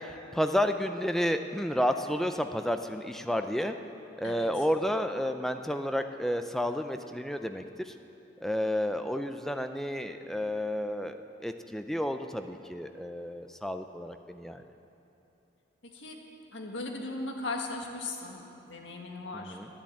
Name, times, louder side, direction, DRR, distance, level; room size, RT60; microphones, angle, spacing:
voice 1, 0.0-3.8 4.2-7.9 8.4-14.6 19.3-19.7, equal, ahead, 7 dB, 0.4 m, -31 dB
voice 2, 4.2-4.6 15.8-16.2 16.5-19.6, left 2 dB, 85° left, 1 dB, 1.6 m, -38 dB
10.5 x 10.0 x 8.6 m, 2.9 s
head